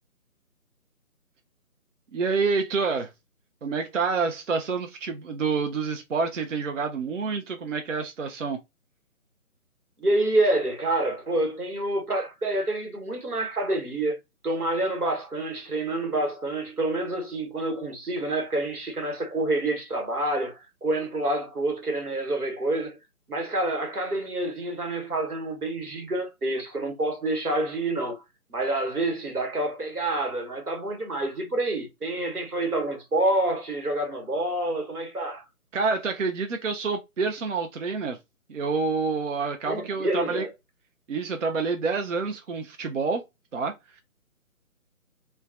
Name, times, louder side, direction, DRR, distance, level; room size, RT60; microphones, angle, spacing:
voice 1, 2.1-3.1 3.6-8.6 35.7-38.2 38.5-40.5 41.1-43.2 43.5-44.0, right 4 dB, 60° right, 0.5 m, -28 dB
voice 2, 10.0-14.2 14.4-23.0 23.3-28.2 28.5-35.4 39.7-40.5, right 2 dB, 85° right, 1.1 m, -27 dB
3.0 x 2.2 x 2.4 m
figure-of-eight pair, 150°, 44 cm